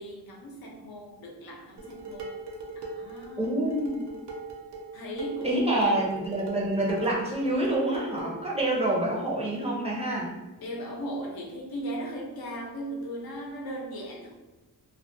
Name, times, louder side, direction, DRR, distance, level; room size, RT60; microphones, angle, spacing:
voice 1, 0.0-2.4 2.7-3.6 4.9-5.9 10.6-14.3, right 1 dB, 65° left, -1 dB, 0.6 m, -37 dB
Dishes pots and pans, 1.8-8.4, right 3 dB, 85° right, 0.5 m, -40 dB
voice 2, 3.4-4.1 5.4-10.3, right 1 dB, 15° right, -5 dB, 0.5 m, -27 dB
2.3 x 2.1 x 2.6 m, 1.1 s
wide cardioid pair, 90°, 39 cm